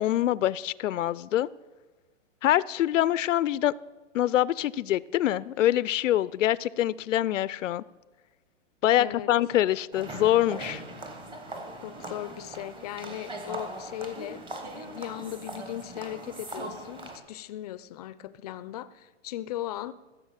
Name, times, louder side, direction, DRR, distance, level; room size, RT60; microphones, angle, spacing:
voice 1, 0.0-1.5 2.4-3.7 4.1-7.8 8.8-10.8, left 13 dB, 85° left, 20 dB, 0.5 m, -25 dB
voice 2, 9.0-9.3 11.8-19.9, left 13 dB, 35° left, 16 dB, 0.5 m, -38 dB
sound 1, 9.9-17.2, right 2 dB, 15° right, 1.1 m, -40 dB
15.0 x 7.0 x 7.3 m, 1.2 s
hypercardioid pair, 150°, 37 cm